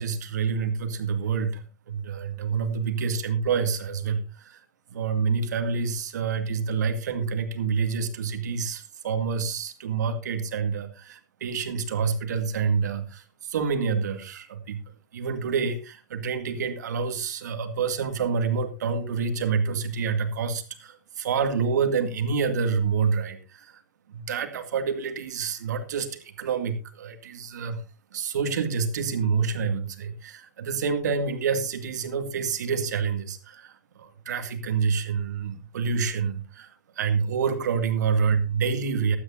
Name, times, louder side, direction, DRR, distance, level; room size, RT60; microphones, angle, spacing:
voice 1, 0.0-4.6 4.9-14.8 15.1-23.8 24.1-27.8 28.1-39.2, right 5 dB, 70° right, 7 dB, 2.4 m, -27 dB
15.5 x 13.0 x 2.7 m, 0.31 s
hypercardioid pair, 100°, 10 cm